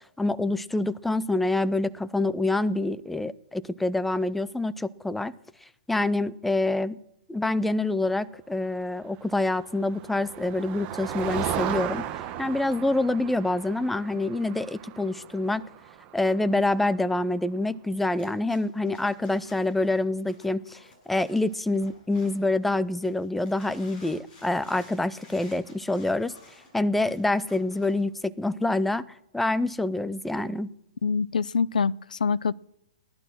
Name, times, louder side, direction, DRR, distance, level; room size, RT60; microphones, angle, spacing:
voice 1, 0.2-5.3 5.9-7.0 7.3-12.1 12.4-15.6 16.1-20.8 21.1-26.3 26.7-29.1 29.3-30.7, left 2 dB, 5° left, 16 dB, 0.5 m, -26 dB
Motor vehicle (road), 9.4-17.2, right 10 dB, 25° right, 1.1 m, -36 dB
sound 1, 18.1-22.6 23.0-28.1, left 2 dB, 30° left, 6.4 m, -53 dB
voice 2, 31.0-32.5, left 5 dB, 90° left, 22 dB, 0.5 m, -25 dB
16.5 x 11.5 x 6.2 m, 0.83 s
hypercardioid pair, 145°, 4 cm